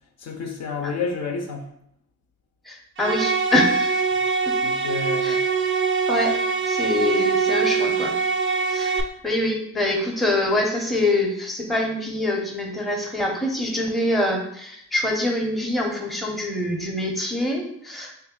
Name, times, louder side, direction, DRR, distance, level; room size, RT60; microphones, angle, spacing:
voice 1, 0.2-1.7 4.1-4.2 4.6-5.4, left 4 dB, 60° left, 3 dB, 0.7 m, -30 dB
voice 2, 2.7-4.0 4.5-4.6 5.2-5.4 6.1-6.3 6.7-8.1 8.7-18.1, left 1 dB, ahead, 0 dB, 0.7 m, -25 dB
sound 1, 3.0-9.0, right 5 dB, 40° right, 0.4 m, -23 dB
3.1 x 2.5 x 3.7 m, 0.72 s
cardioid pair, 90°, 30 cm